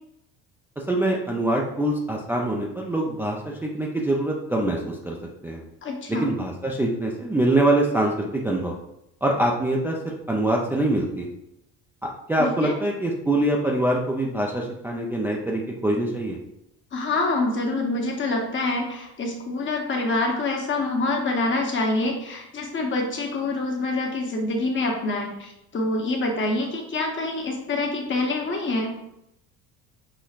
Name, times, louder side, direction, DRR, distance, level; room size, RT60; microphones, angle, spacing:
voice 1, 0.9-5.2 5.4-5.6 6.1-8.7 9.2-11.3 12.3-16.4, right 1 dB, 5° right, -2 dB, 0.4 m, -24 dB
voice 2, 5.8-6.3 12.4-12.7 16.9-28.9, left 2 dB, 35° left, 1 dB, 1.0 m, -26 dB
5.7 x 2.1 x 2.4 m, 0.83 s
supercardioid pair, 85°, 34 cm